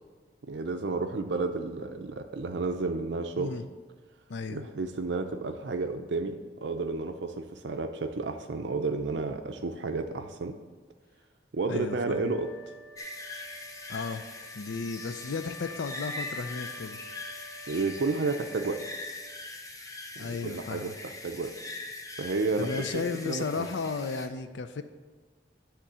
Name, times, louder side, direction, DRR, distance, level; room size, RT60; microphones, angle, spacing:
voice 1, 0.5-3.5 4.5-10.6 11.5-12.5 17.7-18.8 20.2-21.5 22.2-23.7, right 3 dB, 70° right, 6 dB, 0.5 m, -31 dB
voice 2, 4.3-4.7 11.7-12.3 13.9-14.3 14.5-17.0 20.2-21.0 22.6-24.8, left 4 dB, 80° left, 10 dB, 0.5 m, -34 dB
Wind instrument woodwind instrument, 11.8-19.4, left 2 dB, 55° left, 1.0 m, -48 dB
sound 1, 13.0-24.3, left 2 dB, 20° left, 0.6 m, -42 dB
10.0 x 3.7 x 6.7 m, 1.4 s
head